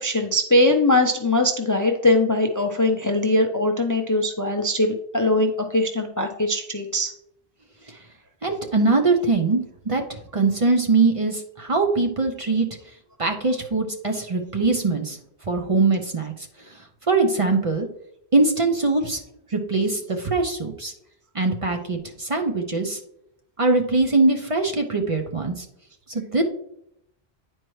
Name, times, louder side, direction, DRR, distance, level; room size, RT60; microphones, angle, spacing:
voice 1, 0.0-7.1, left 2 dB, 25° left, 4 dB, 0.4 m, -21 dB
voice 2, 8.4-12.7 13.2-15.2 15.5-16.5 17.1-17.9 18.3-19.2 19.5-20.9 21.3-23.0 23.6-25.7 26.1-26.4, right 3 dB, 40° right, 3 dB, 0.6 m, -22 dB
10.0 x 4.5 x 3.1 m, 0.76 s
omnidirectional pair, 1.0 m